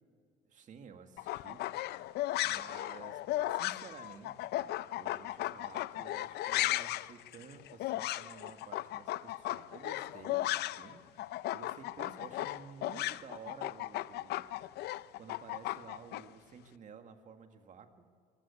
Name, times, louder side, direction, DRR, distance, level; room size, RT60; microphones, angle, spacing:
voice 1, 0.5-1.6 2.4-14.9 15.2-18.1, right 6 dB, 50° right, 6 dB, 1.9 m, -53 dB
sound 1, 1.2-10.9 11.2-16.2, left 15 dB, 75° left, 0.5 m, -36 dB
24.0 x 15.5 x 7.1 m, 2.2 s
cardioid pair, 110°, 17 cm